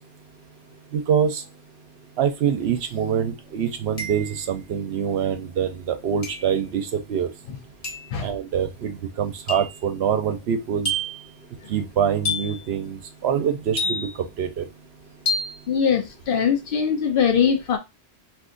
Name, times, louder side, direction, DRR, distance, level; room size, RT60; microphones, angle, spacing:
voice 1, 0.9-1.4 2.2-7.3 8.2-10.9 11.7-14.1 14.4-14.7, right 8 dB, 75° right, 0.8 m, -25 dB
sound 1, 2.8-2.9 4.0-4.5 6.2-6.6 7.8-8.2 9.5-9.8 10.8-11.3 12.2-12.7 13.8-14.3 15.3-15.6, left 1 dB, 45° left, 1.1 m, -28 dB
voice 2, 15.7-17.8, left 7 dB, 60° left, 0.7 m, -21 dB
2.5 x 2.4 x 3.7 m
omnidirectional pair, 1.1 m